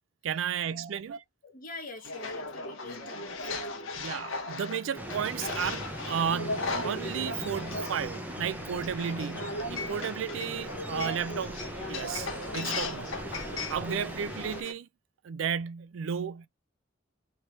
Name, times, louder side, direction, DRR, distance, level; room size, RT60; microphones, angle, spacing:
voice 1, 0.2-1.2 4.0-13.4 13.7-14.9 15.2-16.5, right 7 dB, 75° right, 0.4 m, -33 dB
voice 2, 1.4-3.7, left 2 dB, 45° left, 1.3 m, -45 dB
sound 1, 2.0-14.7, left 2 dB, 90° left, 1.0 m, -37 dB
sound 2, 4.9-14.6, right 1 dB, 10° right, 0.7 m, -40 dB
3.3 x 3.1 x 4.0 m
head